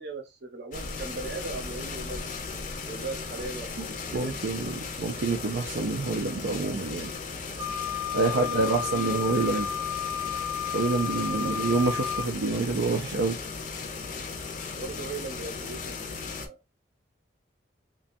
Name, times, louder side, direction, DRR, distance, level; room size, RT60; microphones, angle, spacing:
voice 1, 0.0-2.2 2.9-3.7 4.0-4.4 8.2-9.7 11.2-11.7 14.7-16.6, right 3 dB, 65° right, 0.7 m, -38 dB
sound 1, 0.7-16.5, left 4 dB, 45° left, 0.4 m, -37 dB
voice 2, 4.1-7.1 8.1-9.7 10.7-13.4, right 3 dB, 85° right, 0.4 m, -27 dB
Wind instrument woodwind instrument, 7.6-12.3, left 8 dB, 20° right, 0.3 m, -32 dB
2.5 x 2.3 x 2.5 m
head